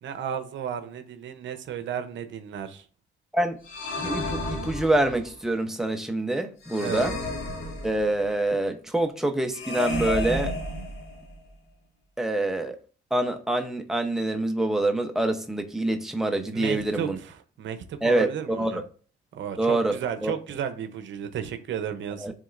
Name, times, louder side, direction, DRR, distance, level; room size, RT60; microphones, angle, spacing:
voice 1, 0.0-2.8 6.8-7.1 16.5-18.8 19.3-22.3, right 8 dB, 70° right, 0.8 m, -33 dB
sound 1, 3.6-5.3 6.6-8.3 9.5-11.4, left 2 dB, 90° left, 1.9 m, -32 dB
voice 2, 4.0-7.1 7.8-10.6 12.2-12.8 13.1-17.2 18.0-18.8 19.6-20.3 22.2-22.3, right 1 dB, ahead, 0.8 m, -26 dB
10.5 x 3.6 x 2.6 m
cardioid pair, 90°, 20 cm